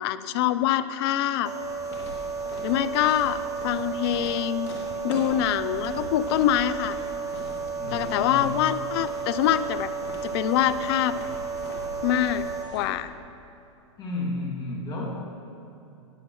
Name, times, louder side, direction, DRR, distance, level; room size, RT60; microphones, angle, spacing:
voice 1, 0.0-1.5 2.6-4.7 5.0-7.0 7.9-9.9 10.2-11.2 12.0-12.4 12.7-13.1, left 12 dB, 50° left, 14 dB, 0.5 m, -25 dB
sound 1, 1.5-12.6, right 5 dB, 20° right, 1.0 m, -33 dB
sound 2, 1.6-12.9, left 2 dB, 75° left, 2.7 m, -42 dB
voice 2, 7.7-8.6 14.0-15.2, left 2 dB, 25° left, -4 dB, 2.6 m, -32 dB
20.5 x 7.4 x 3.2 m, 2.8 s
hypercardioid pair, 120°, 16 cm